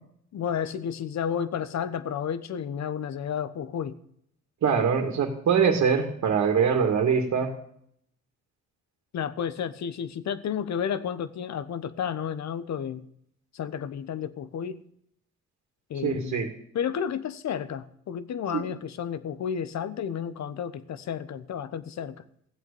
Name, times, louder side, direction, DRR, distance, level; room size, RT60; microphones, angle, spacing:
voice 1, 0.3-3.9 9.1-13.1 13.5-14.8 15.9-22.2, left 8 dB, 65° left, 14 dB, 1.2 m, -32 dB
voice 2, 4.6-7.5 16.0-16.5 18.5-18.7, right 6 dB, 60° right, 3 dB, 2.5 m, -23 dB
15.5 x 8.2 x 7.0 m, 0.68 s
cardioid pair, 90°, 30 cm